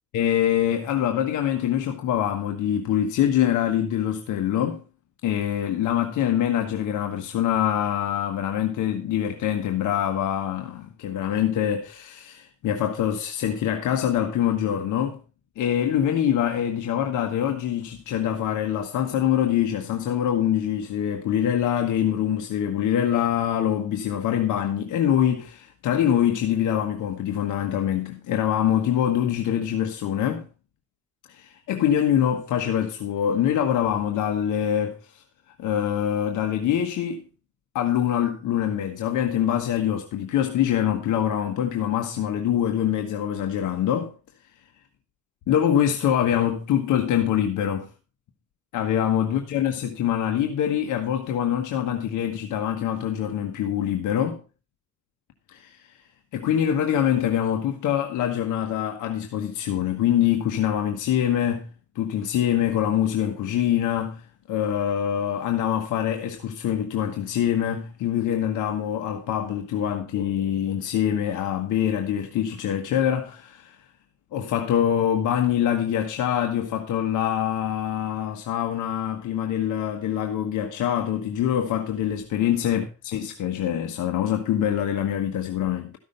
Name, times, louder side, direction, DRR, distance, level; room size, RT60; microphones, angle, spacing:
voice 1, 0.1-4.8 5.2-15.2 15.6-30.5 31.3-35.0 35.6-37.2 37.7-44.1 45.5-47.9 48.7-54.4 55.5-55.7 56.3-61.7 61.9-64.2 64.5-73.8 74.3-82.8 83.1-85.9, left 10 dB, 85° left, 1.4 m, -24 dB
13.5 x 6.2 x 5.3 m
cardioid pair, 90°, 30 cm